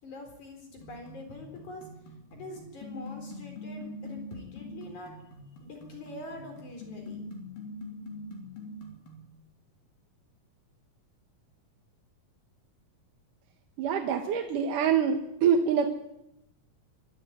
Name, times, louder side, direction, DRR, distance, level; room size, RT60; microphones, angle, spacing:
voice 1, 0.0-1.9 2.3-5.1 5.6-7.2, left 2 dB, 60° left, 3 dB, 5.4 m, -44 dB
sound 1, 0.8-9.3, left 1 dB, 80° left, 5.3 m, -44 dB
voice 2, 13.8-15.9, right 7 dB, 70° right, 4 dB, 2.8 m, -25 dB
24.5 x 12.5 x 9.5 m, 0.85 s
omnidirectional pair, 3.9 m